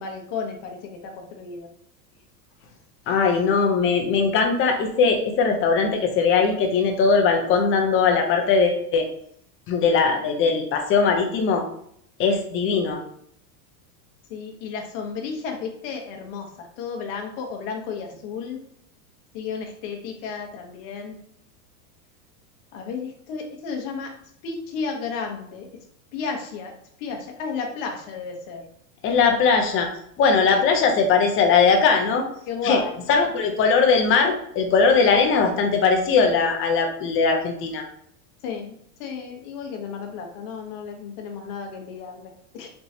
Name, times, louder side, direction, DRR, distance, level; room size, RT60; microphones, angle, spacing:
voice 1, 0.0-1.7 14.3-18.6 19.3-21.2 22.7-24.1 24.4-25.7 26.1-26.7 27.0-28.7 30.5-30.6 32.5-32.9 38.4-42.7, left 5 dB, 50° left, 2 dB, 1.1 m, -33 dB
voice 2, 3.1-9.1 9.7-11.6 12.2-13.0 29.0-29.9 30.2-32.2 32.6-32.8 33.1-37.8, left 5 dB, 25° left, 4 dB, 0.6 m, -20 dB
4.3 x 3.3 x 2.8 m, 0.68 s
supercardioid pair, 140°, 48 cm